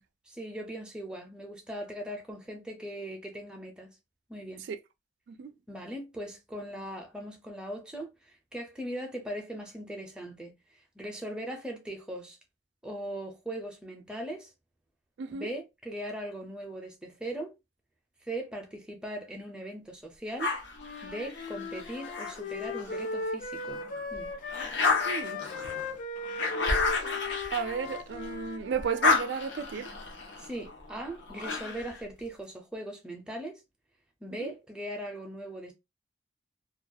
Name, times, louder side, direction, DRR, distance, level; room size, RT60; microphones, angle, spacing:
voice 1, 0.3-4.0 4.3-4.6 5.7-10.6 11.0-12.4 12.8-14.5 15.3-17.5 18.3-20.5 21.0-23.8 24.1-24.3 30.4-33.6 34.2-35.7, right 1 dB, 5° right, 0.5 m, -39 dB
voice 2, 15.2-15.5 25.0-25.4 27.5-30.0 34.4-34.5, right 6 dB, 80° right, 0.3 m, -33 dB
sound 1, 20.4-23.1 23.6-28.4 28.7-32.0, left 4 dB, 90° left, 0.7 m, -32 dB
Wind instrument woodwind instrument, 20.8-29.1, left 3 dB, 45° left, 0.5 m, -38 dB
2.3 x 2.3 x 2.6 m
head